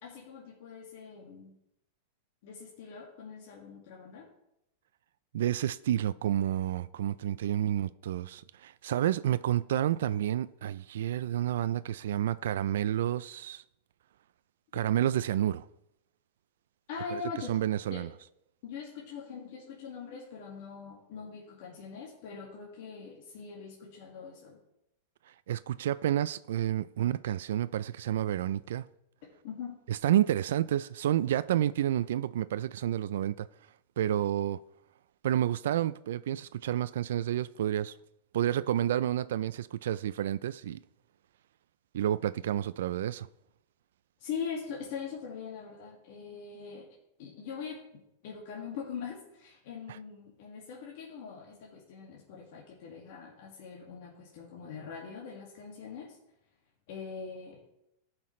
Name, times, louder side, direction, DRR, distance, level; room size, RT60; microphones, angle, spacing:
voice 1, 0.0-1.5 2.4-4.3 16.9-17.6 17.9-18.1 18.6-24.6 29.4-29.8 44.2-56.2 56.9-57.6, left 6 dB, 55° left, 2.0 m, -42 dB
voice 2, 5.3-13.6 14.7-15.7 17.1-17.2 17.5-18.1 25.5-28.9 29.9-33.5 34.0-34.6 35.2-37.9 38.3-40.8 41.9-43.3, right 11 dB, 80° right, 0.3 m, -30 dB
15.0 x 5.8 x 3.2 m
supercardioid pair, 155°, 0 cm